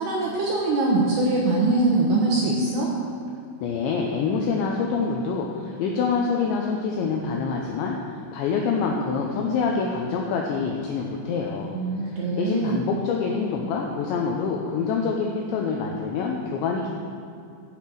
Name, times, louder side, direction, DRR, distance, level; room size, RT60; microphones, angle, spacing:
voice 1, 0.0-2.9 11.7-12.8, right 2 dB, 75° right, -3 dB, 2.7 m, -23 dB
voice 2, 3.6-8.0 8.3-11.8 12.1-16.9, left 5 dB, 80° left, 0 dB, 2.6 m, -26 dB
10.5 x 6.4 x 7.7 m, 2.4 s
omnidirectional pair, 6.0 m